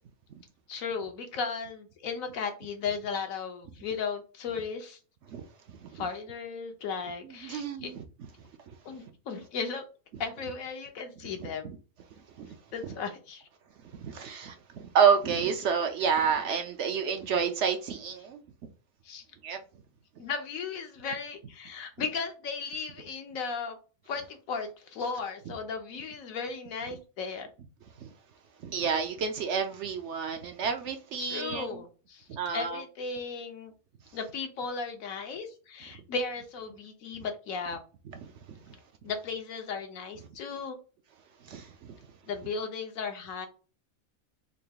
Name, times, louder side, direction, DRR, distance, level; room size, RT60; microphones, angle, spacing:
voice 1, 0.7-5.0 5.9-7.9 8.8-9.8 10.2-11.7 12.7-13.4 19.0-19.2 20.2-23.8 24.1-27.5 31.2-32.3 32.5-33.7 34.1-37.8 39.0-40.8 42.2-43.5, left 5 dB, 75° left, 1.2 m, -36 dB
voice 2, 7.4-8.0 12.4-12.5 13.9-18.4 19.4-19.6 28.0-28.1 28.6-31.7 32.3-32.8 41.5-41.9, right 6 dB, 65° right, 0.8 m, -29 dB
3.8 x 2.3 x 3.4 m
omnidirectional pair, 1.5 m